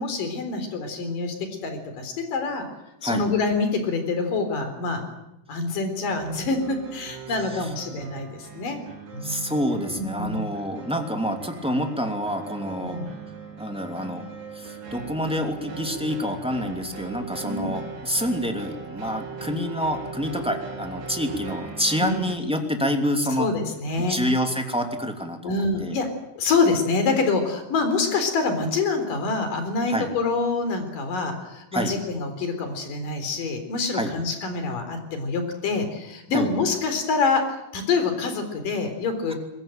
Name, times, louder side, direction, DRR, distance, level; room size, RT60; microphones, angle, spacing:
voice 1, 0.0-1.4 1.6-2.7 3.0-5.0 5.5-8.8 9.1-9.5 9.9-10.4 12.8-13.1 17.4-17.8 19.5-19.7 22.0-22.2 23.4-24.2 25.4-26.1 26.4-39.4, left 4 dB, 60° left, 7 dB, 5.3 m, -26 dB
sound 1, 6.1-22.4, right 5 dB, 70° right, 4.6 m, -39 dB
voice 2, 7.3-7.6 9.2-13.0 13.6-14.3 14.5-23.5 24.0-25.5 25.8-25.9 29.9-30.1 31.7-31.9 33.9-34.1 36.3-36.5 39.3-39.4, equal, ahead, 4 dB, 2.0 m, -27 dB
22.5 x 21.5 x 9.1 m, 0.88 s
omnidirectional pair, 4.5 m